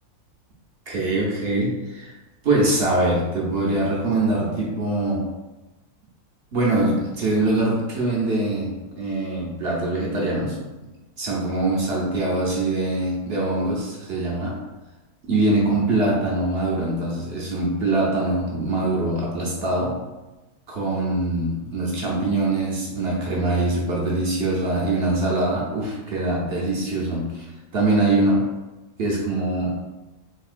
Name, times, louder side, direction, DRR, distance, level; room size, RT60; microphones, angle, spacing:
voice 1, 0.9-2.1 2.4-5.3 6.5-10.6 11.2-14.6 15.2-20.0 20.7-27.5 27.7-28.5 29.0-29.8, right 2 dB, 55° right, -4 dB, 0.7 m, -23 dB
3.6 x 2.7 x 2.4 m, 1.1 s
omnidirectional pair, 1.6 m